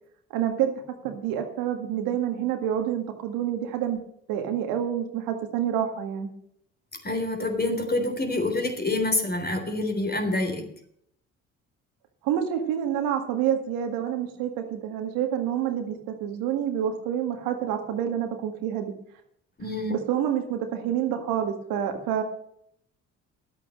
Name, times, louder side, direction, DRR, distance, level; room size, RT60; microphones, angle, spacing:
voice 1, 0.3-0.7 1.0-4.0 4.3-6.3 12.2-18.9 19.9-22.2, right 9 dB, 80° right, 5 dB, 1.9 m, -28 dB
voice 2, 7.0-10.7 19.6-20.0, left 2 dB, 30° left, 4 dB, 3.7 m, -27 dB
11.0 x 8.4 x 6.5 m, 0.69 s
hypercardioid pair, 55°, 34 cm